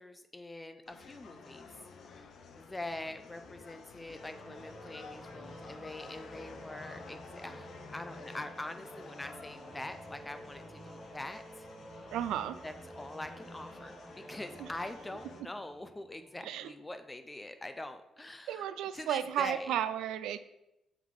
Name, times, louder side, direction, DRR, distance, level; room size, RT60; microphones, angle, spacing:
voice 1, 0.0-1.7 2.6-11.7 12.6-19.8, left 2 dB, 15° left, 9 dB, 0.4 m, -44 dB
sound 1, 0.9-15.4, left 5 dB, 65° left, 0.6 m, -52 dB
Singing / Musical instrument, 4.1-16.5, right 1 dB, 15° right, 0.7 m, -51 dB
voice 2, 12.1-12.6 14.6-14.7 16.4-16.7 18.5-20.4, right 10 dB, 85° right, 13 dB, 0.3 m, -33 dB
5.7 x 3.5 x 4.7 m, 0.89 s
cardioid pair, 90°, 0 cm